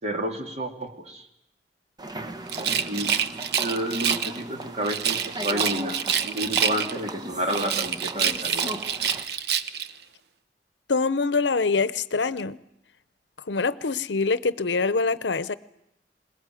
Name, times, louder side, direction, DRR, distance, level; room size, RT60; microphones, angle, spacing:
voice 1, 0.0-1.3 2.9-3.1 3.6-6.0 6.3-8.7, right 1 dB, 40° right, 5 dB, 2.4 m, -30 dB
sound 1, 2.0-9.2, right 2 dB, 25° right, 1.2 m, -36 dB
Rattle, 2.5-4.4 4.8-7.1 7.5-9.9, right 8 dB, 65° right, 0.9 m, -27 dB
voice 2, 10.9-12.6 13.5-15.6, left 4 dB, 85° left, 17 dB, 0.8 m, -24 dB
21.5 x 20.0 x 9.2 m, 0.80 s
head